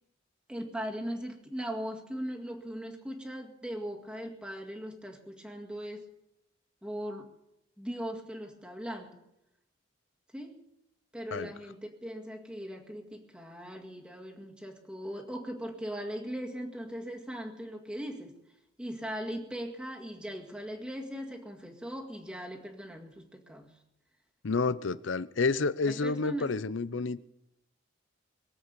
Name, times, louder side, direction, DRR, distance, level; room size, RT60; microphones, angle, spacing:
voice 1, 0.5-6.1 6.8-7.3 7.8-9.2 10.3-10.6 11.1-18.4 18.8-23.8 25.9-26.6, equal, 5° right, 2.0 m, -39 dB
voice 2, 24.4-27.2, left 4 dB, 75° left, 0.6 m, -29 dB
23.0 x 8.0 x 6.9 m
head